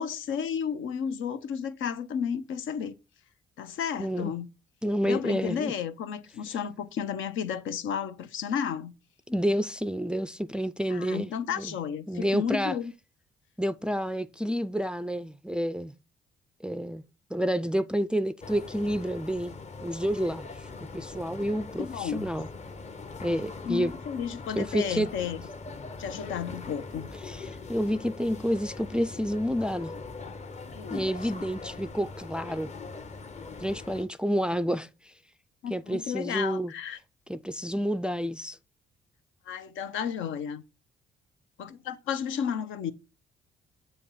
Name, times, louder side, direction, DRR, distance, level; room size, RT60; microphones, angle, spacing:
voice 1, 0.0-3.0 3.6-4.5 5.0-8.9 10.9-12.9 21.8-22.3 23.7-25.4 26.0-27.1 30.8-31.1 35.6-37.0 39.5-40.6 41.6-42.9, left 7 dB, 80° left, 0.7 m, -32 dB
voice 2, 4.0-4.3 4.8-5.7 9.3-11.3 11.6-11.7 12.1-12.8 13.6-15.9 16.6-17.0 17.3-19.5 19.8-20.7 20.9-22.5 23.2-23.9 24.5-25.1 27.2-29.9 30.9-32.7 33.6-35.1 35.7-36.7 37.3-38.6, equal, 5° right, 0.3 m, -29 dB
sound 1, 18.4-34.0, left 3 dB, 35° left, 0.8 m, -41 dB
7.7 x 2.9 x 5.5 m
cardioid pair, 90°, 20 cm